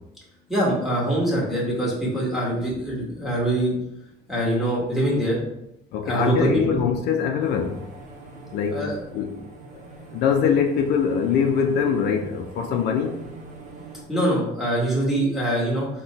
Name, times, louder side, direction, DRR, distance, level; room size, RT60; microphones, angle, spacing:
voice 1, 0.5-3.8 4.3-5.4 6.0-6.8 8.7-9.0 14.1-15.9, right 1 dB, ahead, -6 dB, 1.3 m, -23 dB
voice 2, 5.9-7.8 8.5-9.3 10.1-13.2, left 7 dB, 75° left, 4 dB, 0.4 m, -23 dB
sound 1, 7.4-14.0, right 3 dB, 45° right, 0.8 m, -43 dB
3.9 x 2.2 x 2.9 m, 0.82 s
cardioid pair, 110°, 17 cm